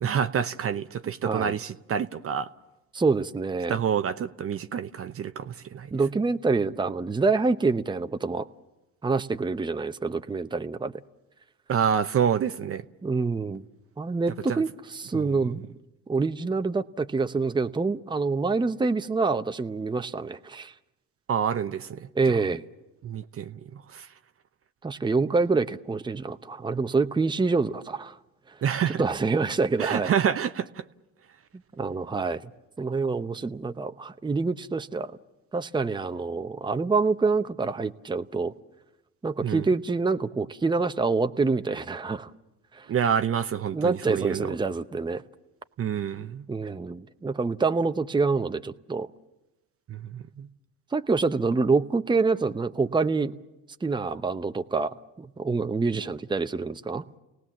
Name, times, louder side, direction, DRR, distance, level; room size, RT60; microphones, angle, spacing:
voice 1, 0.0-2.5 3.7-5.9 11.7-12.8 14.5-14.6 15.1-15.2 21.3-22.1 23.0-24.1 28.6-29.0 29.8-30.8 39.4-39.6 42.9-44.5 45.8-46.4 49.9-50.5, right 8 dB, 40° right, 10 dB, 0.9 m, -27 dB
voice 2, 1.2-1.5 2.9-3.8 5.9-8.5 9.0-10.9 13.0-13.6 14.0-15.6 16.1-20.7 22.1-22.6 24.8-28.2 28.5-28.6 29.0-30.1 31.8-32.5 32.8-35.1 35.5-38.5 39.2-42.3 42.7-42.9 43.7-45.2 46.5-49.1 50.9-53.3 53.8-57.2, right 4 dB, 15° right, 9 dB, 0.9 m, -26 dB
30.0 x 18.5 x 7.3 m, 1.0 s
hypercardioid pair, 70°, 36 cm